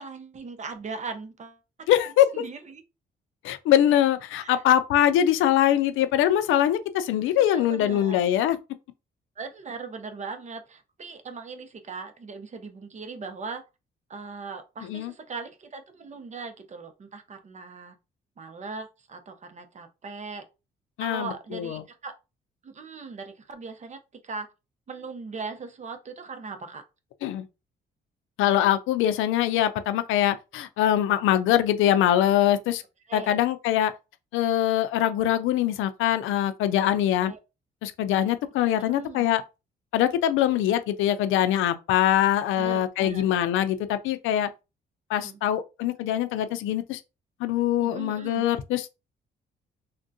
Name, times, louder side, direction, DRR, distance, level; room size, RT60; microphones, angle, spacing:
voice 1, 0.0-1.6 2.3-2.8 4.4-4.6 7.4-8.2 9.4-13.6 14.1-17.9 18.4-20.4 21.0-22.1 22.6-24.0 24.2-24.5 24.9-26.8 33.1-33.4 37.1-37.4 38.6-39.3 42.6-43.2 45.2-45.4 47.8-48.4, right 4 dB, 35° right, 0.7 m, -39 dB
voice 2, 1.9-2.4 3.4-8.6 14.8-15.1 21.0-21.8 27.2-27.4 28.4-32.8 33.1-33.9 34.3-37.3 37.8-39.4 39.9-44.5 45.1-47.0 47.4-48.9, left 11 dB, 90° left, 0.4 m, -23 dB
3.5 x 2.2 x 2.6 m
cardioid pair, 90°, 20 cm